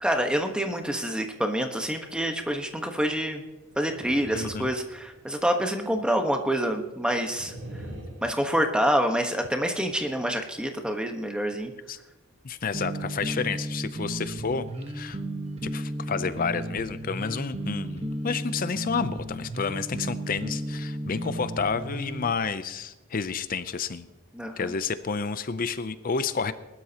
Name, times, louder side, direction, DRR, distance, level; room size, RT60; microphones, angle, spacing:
voice 1, 0.0-3.4 3.8-7.5 8.2-11.7 24.3-24.7, equal, 5° right, 4 dB, 1.2 m, -27 dB
sound 1, 3.7-5.4 7.2-8.2, right 1 dB, 80° right, 5.4 m, -42 dB
voice 2, 4.3-4.7 11.9-12.0 12.4-14.7 14.9-15.2 15.6-24.1 24.6-26.5, left 5 dB, 40° left, 13 dB, 0.5 m, -30 dB
sound 2, 12.7-22.3, right 1 dB, 30° right, 1.2 m, -34 dB
20.5 x 12.0 x 2.9 m, 1.1 s
head